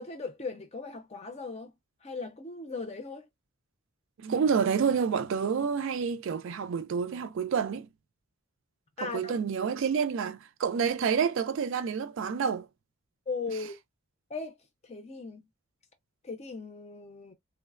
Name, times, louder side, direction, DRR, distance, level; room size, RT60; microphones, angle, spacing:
voice 1, 0.0-1.7 2.0-3.3 9.0-9.3 13.3-13.8 14.3-14.6 14.8-15.5 16.2-17.3, left 4 dB, 30° left, 0.5 m, -38 dB
voice 2, 4.2-7.9 9.0-12.7, right 6 dB, 55° right, 0.3 m, -28 dB
3.1 x 2.0 x 2.4 m
head